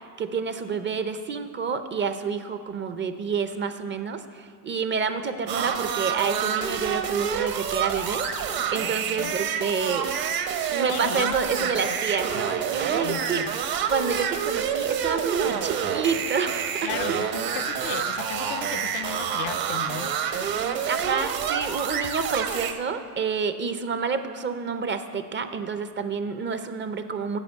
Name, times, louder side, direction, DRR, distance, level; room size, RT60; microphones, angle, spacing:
voice 1, 0.2-8.3 8.7-10.2 10.7-13.4 13.9-17.3 20.9-27.4, right 5 dB, 25° right, 9 dB, 0.6 m, -28 dB
sound 1, 5.5-22.7, right 7 dB, 50° right, 1.0 m, -28 dB
voice 2, 8.8-9.4 10.9-11.8 13.0-13.6 16.8-20.2, left 13 dB, 60° left, 15 dB, 0.6 m, -36 dB
9.9 x 6.1 x 8.0 m, 2.1 s
supercardioid pair, 110°, 46 cm